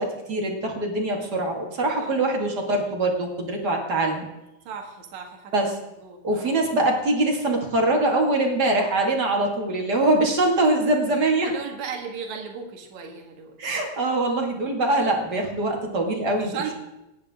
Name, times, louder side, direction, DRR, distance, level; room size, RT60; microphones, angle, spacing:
voice 1, 0.0-4.3 5.5-5.8 6.2-11.5 13.6-16.5, right 2 dB, 35° right, 1 dB, 2.3 m, -23 dB
voice 2, 1.9-2.2 4.6-5.5 6.0-6.6 11.4-13.6 16.3-16.7, right 6 dB, 75° right, 3 dB, 3.0 m, -36 dB
27.5 x 9.4 x 3.6 m, 0.95 s
omnidirectional pair, 3.3 m